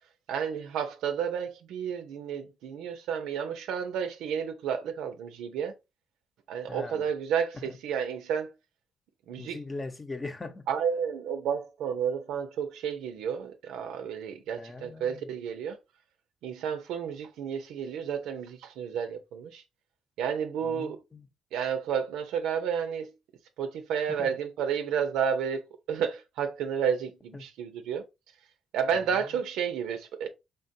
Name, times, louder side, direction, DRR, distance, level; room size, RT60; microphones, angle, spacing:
voice 1, 0.3-5.7 6.5-8.5 9.3-9.6 10.7-15.8 16.4-19.6 20.2-21.0 21.5-23.1 23.6-28.0 28.7-30.3, right 7 dB, 90° right, 0.6 m, -31 dB
voice 2, 6.7-7.0 7.5-7.6 9.4-10.7 14.6-15.3 20.6-21.3 24.1-24.3 27.3-27.5, left 3 dB, 25° left, 0.7 m, -40 dB
3.8 x 3.5 x 2.6 m
cardioid pair, 90°, 0 cm